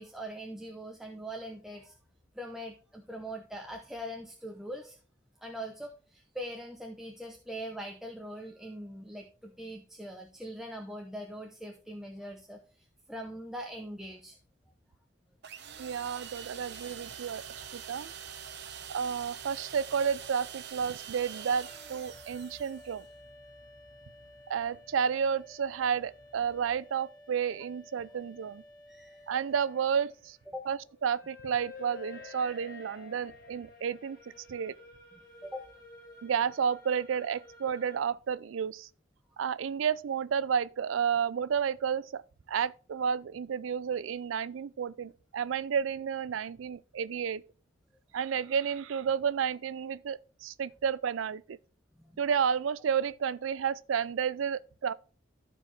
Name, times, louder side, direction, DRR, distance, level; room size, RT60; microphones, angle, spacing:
voice 1, 0.0-2.0 2.3-5.0 5.4-14.4 28.9-29.3 30.5-30.7 35.4-35.6 52.0-52.1, equal, ahead, 0.7 m, -42 dB
sound 1, 15.4-23.1, right 8 dB, 60° right, 0.8 m, -45 dB
sound 2, 15.6-26.8, left 1 dB, 85° left, 2.1 m, -61 dB
voice 2, 15.8-17.4 17.7-18.1 18.9-23.1 24.5-28.6 29.3-30.4 30.7-34.2 34.5-34.7 36.2-38.9 39.4-42.2 42.5-47.4 48.1-51.6 52.2-54.9, right 7 dB, 85° right, 0.4 m, -31 dB
sound 3, 21.1-38.0, left 3 dB, 50° left, 1.8 m, -52 dB
13.5 x 4.6 x 3.2 m
head